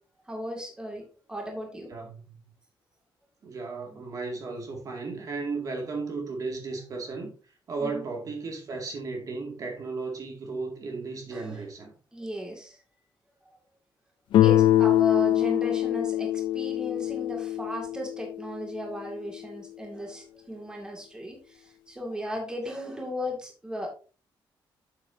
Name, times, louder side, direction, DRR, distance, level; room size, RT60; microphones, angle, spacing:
voice 1, 0.3-1.9 7.8-8.0 11.3-11.7 12.1-12.8 14.4-23.9, equal, 10° right, 2.1 m, -36 dB
voice 2, 1.9-2.4 3.4-7.3 7.7-11.9, right 3 dB, 45° right, 2.1 m, -35 dB
Guitar, 14.3-19.1, left 13 dB, 75° left, 0.4 m, -24 dB
9.0 x 7.3 x 2.7 m
wide cardioid pair, 165°, 8 cm